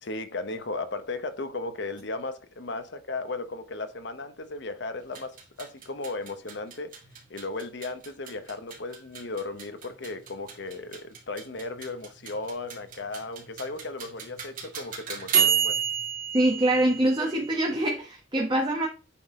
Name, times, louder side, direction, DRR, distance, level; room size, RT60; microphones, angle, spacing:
voice 1, 0.0-6.9 7.3-15.8, left 3 dB, 65° left, 1.1 m, -36 dB
sound 1, 5.0-17.8, right 8 dB, 45° right, 2.2 m, -32 dB
voice 2, 16.3-18.9, right 1 dB, 25° right, 1.2 m, -24 dB
8.6 x 3.9 x 3.7 m
head